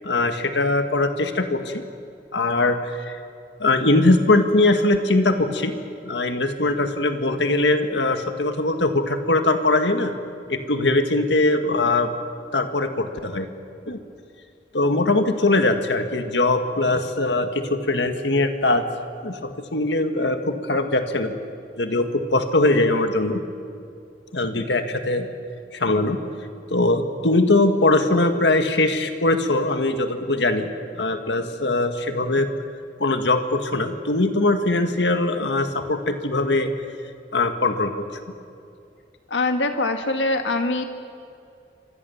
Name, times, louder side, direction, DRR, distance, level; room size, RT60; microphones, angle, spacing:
voice 1, 0.0-1.8 2.3-3.2 3.6-5.7 6.0-10.1 10.5-12.1 12.5-13.5 13.9-14.0 14.7-18.9 19.2-21.3 21.8-23.4 24.3-25.3 25.7-26.2 26.7-30.7 30.9-32.5 33.0-36.7 37.3-38.0, left 2 dB, 70° left, 7 dB, 1.7 m, -21 dB
voice 2, 39.3-40.8, left 2 dB, 90° left, 6 dB, 1.6 m, -23 dB
28.5 x 25.0 x 7.1 m, 2.5 s
head